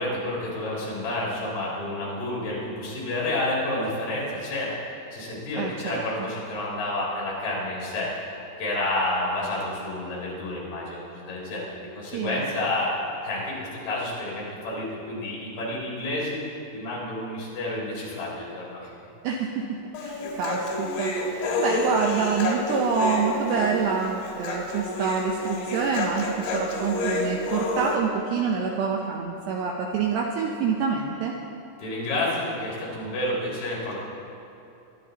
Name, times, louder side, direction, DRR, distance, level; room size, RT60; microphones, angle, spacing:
voice 1, 0.0-4.8 5.1-8.1 8.6-12.9 13.2-16.4 16.7-18.9 31.8-34.0, left 1 dB, 50° left, -6 dB, 5.6 m, -30 dB
voice 2, 5.6-6.0 12.1-12.4 19.2-31.4, right 5 dB, 85° right, 0 dB, 2.4 m, -27 dB
Human voice, 19.9-28.0, left 2 dB, 70° left, 3.9 m, -29 dB
24.0 x 11.5 x 4.0 m, 2.8 s
omnidirectional pair, 6.0 m